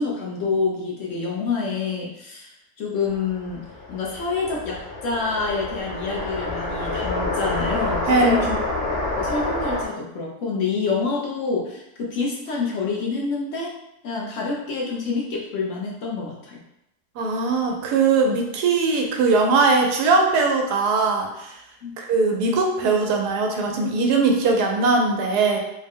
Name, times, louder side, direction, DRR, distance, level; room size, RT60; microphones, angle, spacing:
voice 1, 0.0-8.6 8.9-13.7 14.0-16.6 21.8-21.9, left 4 dB, 65° left, -2 dB, 0.9 m, -27 dB
sound 1, 3.1-9.8, left 2 dB, 30° left, 0.9 m, -28 dB
voice 2, 8.1-8.4 17.2-21.5 22.0-25.6, right 3 dB, 85° right, 2 dB, 1.2 m, -20 dB
3.9 x 2.1 x 3.5 m, 0.82 s
omnidirectional pair, 1.7 m